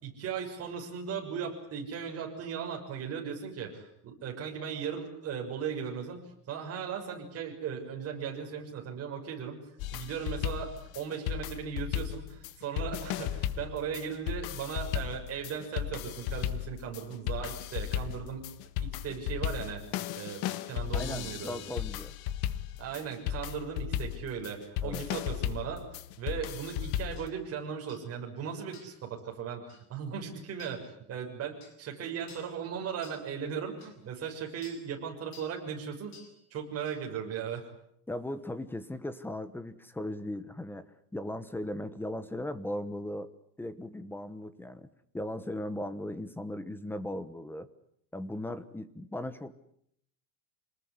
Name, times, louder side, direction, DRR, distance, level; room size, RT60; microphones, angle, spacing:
voice 1, 0.0-6.2 6.5-9.6 9.9-18.5 18.8-21.6 22.8-25.8 26.2-36.1 36.5-37.7, right 7 dB, 30° right, 1 dB, 6.5 m, -37 dB
sound 1, 9.8-27.3, left 11 dB, 50° left, 1.6 m, -35 dB
voice 2, 20.9-22.1 24.8-25.1 38.1-40.8 41.1-43.3 43.6-44.9 45.1-47.7 48.1-49.5, left 1 dB, 5° left, 13 dB, 1.1 m, -37 dB
sound 2, 27.2-27.3 27.9-28.1 28.7-29.0 29.7-29.9 30.6-30.8 31.6-31.8 32.3-32.5 33.0-33.2 33.8-33.9 34.6-34.8 35.3-35.6 36.1-36.3 36.9-37.0, left 5 dB, 35° left, 7.4 m, -53 dB
27.5 x 20.0 x 9.7 m, 0.72 s
cardioid pair, 165°, 47 cm